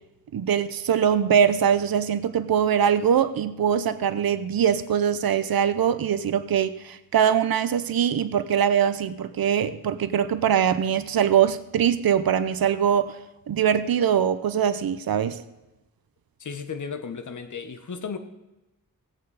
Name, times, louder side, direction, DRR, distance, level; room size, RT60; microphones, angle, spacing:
voice 1, 0.3-13.2 13.5-15.4, right 8 dB, 90° right, 13 dB, 0.7 m, -22 dB
voice 2, 16.4-18.2, left 5 dB, 60° left, 9 dB, 1.1 m, -34 dB
17.0 x 8.0 x 4.1 m, 0.98 s
wide cardioid pair, 75°, 35 cm